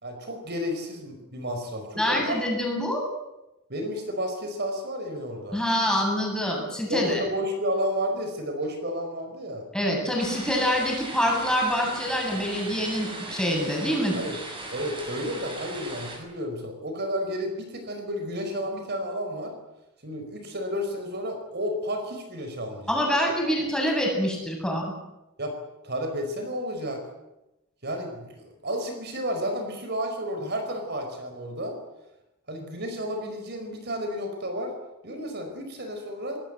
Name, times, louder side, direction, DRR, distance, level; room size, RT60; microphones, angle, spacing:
voice 1, 0.0-2.4 3.7-5.6 6.9-9.6 14.1-14.4 14.7-19.5 20.0-23.0 25.4-25.6 25.8-27.0 27.8-31.8 32.5-34.7 35.0-36.4, equal, 50° right, 5 dB, 4.7 m, -31 dB
voice 2, 2.0-3.0 5.5-7.2 9.7-14.2 22.9-24.8, equal, 5° left, 0 dB, 7.9 m, -25 dB
sound 1, 10.2-16.2, right 2 dB, 25° right, 6.8 m, -38 dB
26.0 x 20.0 x 8.1 m, 0.96 s
head